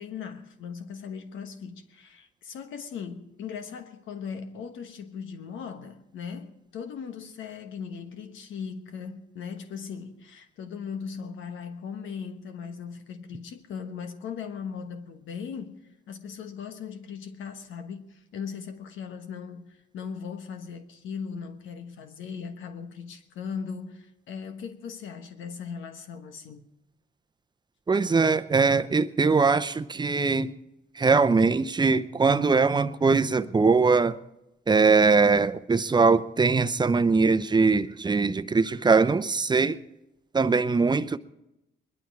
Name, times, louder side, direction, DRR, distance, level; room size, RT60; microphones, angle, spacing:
voice 1, 0.0-15.8 16.1-26.7, left 6 dB, 80° left, 1.2 m, -38 dB
voice 2, 27.9-30.5 31.0-34.2 34.7-39.8 40.3-41.2, right 4 dB, 20° right, 0.7 m, -21 dB
21.5 x 11.5 x 4.7 m
cardioid pair, 90°, 20 cm